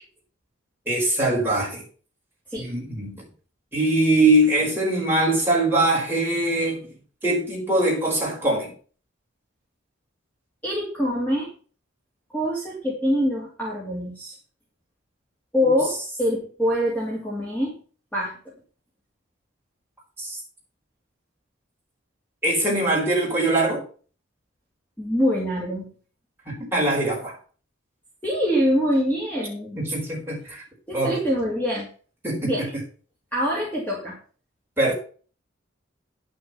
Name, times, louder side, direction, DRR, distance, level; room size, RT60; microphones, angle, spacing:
voice 1, 0.9-1.8 2.6-3.2 3.7-6.9 7.2-8.7 20.2-20.4 22.4-23.8 26.5-27.4 29.7-30.6 30.9-31.2 32.2-32.5 34.8-34.9, right 1 dB, 10° right, -4 dB, 4.6 m, -22 dB
voice 2, 10.6-11.5 12.3-14.4 15.5-17.8 18.1-18.5 25.0-25.9 28.2-29.8 30.9-31.9 32.4-32.7 33.3-34.2, equal, 10° left, -5 dB, 2.7 m, -24 dB
10.5 x 6.5 x 5.8 m, 0.40 s
head